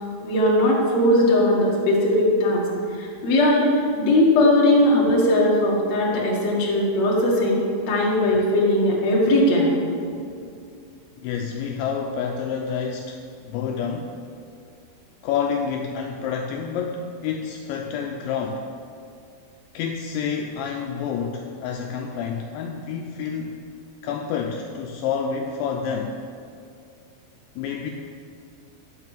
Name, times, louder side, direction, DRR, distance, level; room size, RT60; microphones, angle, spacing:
voice 1, 0.2-2.6 3.0-3.7 4.0-9.7, left 1 dB, 50° left, -4 dB, 2.3 m, -19 dB
voice 2, 11.2-14.1 15.2-18.7 19.7-23.6 24.0-26.2 27.6-27.9, left 6 dB, 80° left, 2 dB, 2.7 m, -28 dB
11.0 x 5.9 x 7.2 m, 2.4 s
omnidirectional pair, 5.5 m